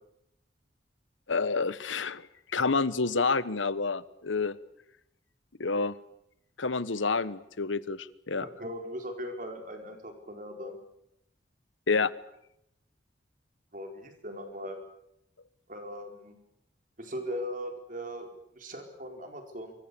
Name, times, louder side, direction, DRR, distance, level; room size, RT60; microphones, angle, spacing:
voice 1, 1.3-2.3 2.5-4.6 5.6-6.0 6.6-8.5 11.9-12.1, left 4 dB, 85° left, 17 dB, 1.1 m, -28 dB
voice 2, 8.4-10.8 13.7-14.8 15.7-16.4 17.0-18.3 18.5-19.7, equal, 45° right, 4 dB, 4.5 m, -39 dB
27.0 x 24.0 x 6.9 m, 0.79 s
head